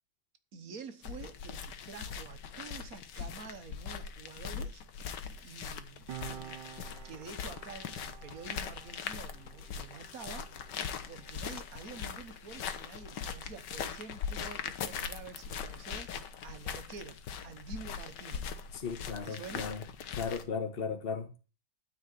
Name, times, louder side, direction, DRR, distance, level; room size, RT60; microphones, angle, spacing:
voice 1, 0.5-4.8 5.1-6.5 7.0-10.8 11.1-18.5 19.2-19.7, right 5 dB, 60° right, 1.5 m, -48 dB
sound 1, 1.0-20.4, left 7 dB, 90° left, 1.6 m, -41 dB
Piano, 6.1-13.1 13.4-13.6, right 11 dB, 90° right, 1.4 m, -51 dB
voice 2, 18.7-21.5, left 5 dB, 35° left, 1.5 m, -37 dB
12.5 x 4.8 x 8.2 m
omnidirectional pair, 1.8 m